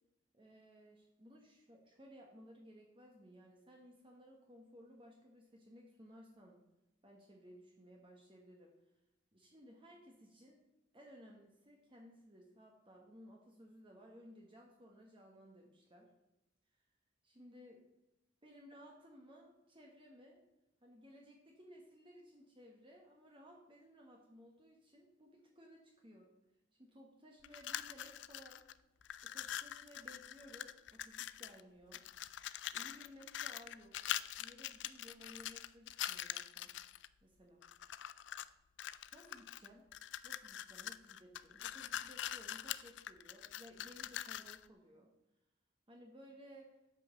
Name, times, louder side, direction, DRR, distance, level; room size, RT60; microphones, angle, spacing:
voice 1, 0.3-6.6 7.0-8.7 9.3-10.6 10.9-16.1 17.2-17.8 18.4-20.4 20.8-26.3 26.8-28.6 29.2-32.0 32.7-34.1 34.4-36.7 37.2-37.6 39.1-39.9 40.2-45.1 45.9-46.7, equal, 25° right, 0 dB, 1.3 m, -59 dB
sound 1, 27.4-28.7 29.0-31.6 31.9-37.1 37.6-38.5 38.8-44.7, left 11 dB, 65° left, 0.4 m, -44 dB
8.7 x 5.4 x 6.5 m, 0.93 s
head